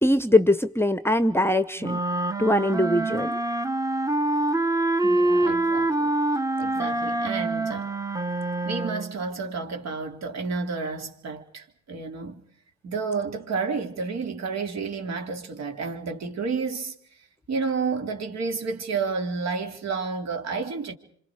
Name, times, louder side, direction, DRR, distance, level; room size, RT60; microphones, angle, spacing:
voice 1, 0.0-2.0 2.4-3.4, left 1 dB, 10° left, 1.0 m, -22 dB
sound 1, 1.8-9.2, right 2 dB, 10° right, 1.2 m, -25 dB
voice 2, 5.0-6.1 6.6-7.9 8.6-12.4 12.8-16.9 17.5-20.9, right 4 dB, 60° right, 3.3 m, -30 dB
27.0 x 26.5 x 4.9 m
cardioid pair, 90°, 30 cm